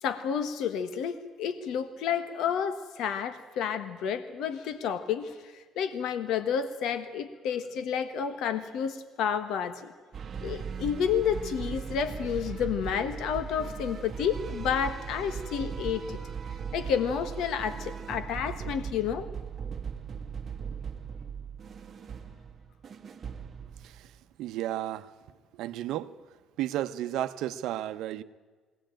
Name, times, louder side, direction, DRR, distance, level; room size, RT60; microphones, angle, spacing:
voice 1, 0.0-9.9 10.4-16.2 16.7-19.3, left 7 dB, 75° left, 1.2 m, -30 dB
sound 1, 10.1-24.2, right 7 dB, 35° right, 1.5 m, -38 dB
voice 2, 23.8-25.1 25.5-28.2, right 13 dB, 80° right, 0.8 m, -34 dB
22.0 x 17.5 x 9.0 m
cardioid pair, 125°, 0 cm